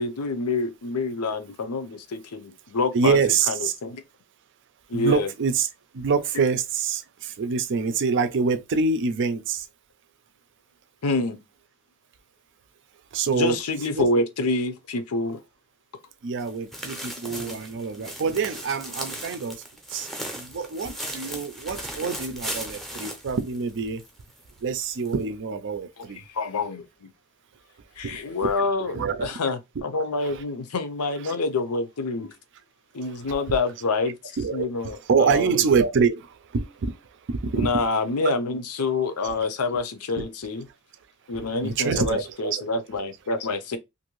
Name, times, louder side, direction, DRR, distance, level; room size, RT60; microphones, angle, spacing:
voice 1, 0.0-3.2 3.5-3.6 3.8-4.0 4.9-5.3 11.0-11.4 13.3-15.4 17.3-17.6 26.3-27.1 28.0-32.3 32.9-34.1 34.5-35.5 37.5-40.6 41.3-43.8, left 3 dB, 90° left, 0.6 m, -27 dB
voice 2, 2.9-3.7 4.9-5.7 5.9-9.6 13.1-13.6 14.0-14.1 16.2-19.6 19.9-20.1 20.3-24.0 24.6-26.2 28.0-29.4 30.2-30.4 31.2-31.4 33.2-33.7 34.4-36.3 36.5-37.0 37.3-37.9 38.2-38.3 39.2-39.3 40.2-40.3 41.4-42.7, right 5 dB, 55° right, 0.4 m, -26 dB
sound 1, 16.4-24.1 24.4-24.5 25.0-25.1, equal, ahead, 0.6 m, -37 dB
2.6 x 2.6 x 3.0 m
head